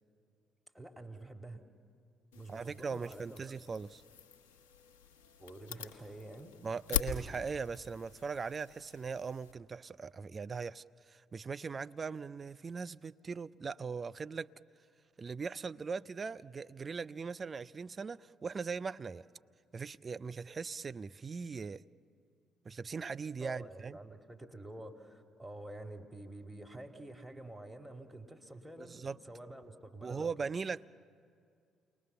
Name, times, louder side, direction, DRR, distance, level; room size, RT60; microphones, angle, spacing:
voice 1, 0.7-1.6 2.3-3.5 5.4-6.6 23.4-30.3, right 1 dB, 5° right, 2.6 m, -48 dB
sound 1, 2.3-9.5, left 8 dB, 75° left, 1.2 m, -43 dB
voice 2, 2.5-4.0 6.6-14.5 15.2-19.3 19.7-21.8 22.6-24.0 28.8-29.2 30.0-30.9, right 5 dB, 35° right, 0.5 m, -40 dB
28.5 x 21.0 x 6.9 m
figure-of-eight pair, 45°, 0 cm